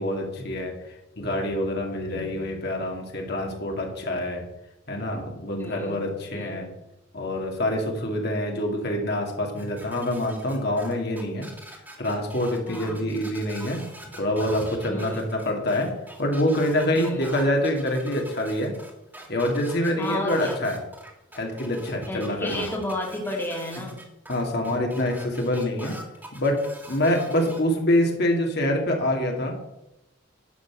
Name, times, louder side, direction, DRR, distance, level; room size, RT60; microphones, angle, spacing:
voice 1, 0.0-4.5 4.9-6.7 7.1-11.5 12.0-13.8 14.1-15.9 16.2-18.7 19.3-20.8 21.3-22.6 24.3-26.0 26.3-29.6, left 1 dB, 55° left, 1 dB, 2.3 m, -26 dB
voice 2, 5.6-6.7 12.7-13.0 14.9-15.3 16.9-17.3 20.0-20.6 22.1-24.0 27.0-27.3, left 1 dB, 10° left, -1 dB, 2.2 m, -33 dB
sound 1, 9.6-27.6, right 1 dB, 10° right, 2.0 m, -43 dB
11.0 x 8.1 x 6.1 m, 0.87 s
head